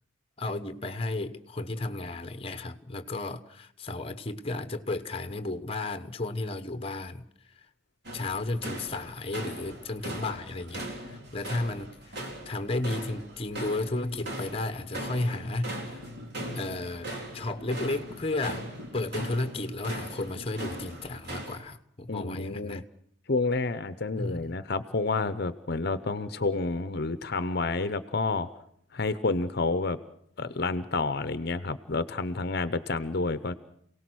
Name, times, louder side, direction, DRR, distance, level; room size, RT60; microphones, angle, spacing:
voice 1, 0.4-7.2 8.1-16.0 16.5-18.7 18.9-22.8 24.1-24.6, left 2 dB, 30° left, 1.0 m, -33 dB
sound 1, 8.0-21.6, right 1 dB, 55° right, 3.9 m, -39 dB
voice 2, 22.1-22.8 23.3-28.5 28.9-30.0 30.4-33.5, left 3 dB, 55° left, 0.8 m, -29 dB
28.5 x 18.0 x 6.2 m
head